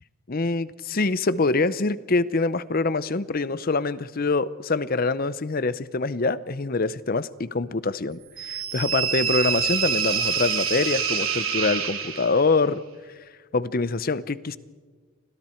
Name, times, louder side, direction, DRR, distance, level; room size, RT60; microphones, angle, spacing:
voice 1, 0.3-12.8 13.5-14.6, left 3 dB, 45° left, 16 dB, 0.7 m, -25 dB
sound 1, 8.4-12.5, right 6 dB, 75° right, 3.1 m, -26 dB
29.0 x 25.5 x 4.5 m, 1.5 s
head